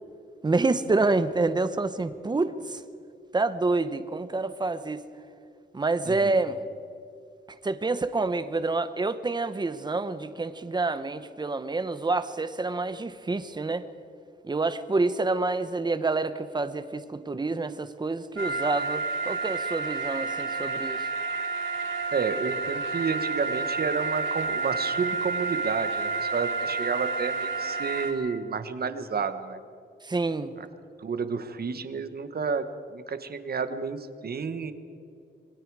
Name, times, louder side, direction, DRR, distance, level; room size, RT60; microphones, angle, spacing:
voice 1, 0.4-2.8 3.3-5.0 5.7-6.6 7.6-13.8 14.4-21.1 30.0-30.5, right 3 dB, 20° right, 12 dB, 0.9 m, -27 dB
voice 2, 6.0-6.4 22.1-29.6 30.6-30.7 31.0-34.7, right 5 dB, 55° right, 9 dB, 1.4 m, -31 dB
sound 1, 18.4-28.1, right 3 dB, 85° right, 2.9 m, -30 dB
26.5 x 22.5 x 4.8 m, 2.5 s
wide cardioid pair, 170°, 20 cm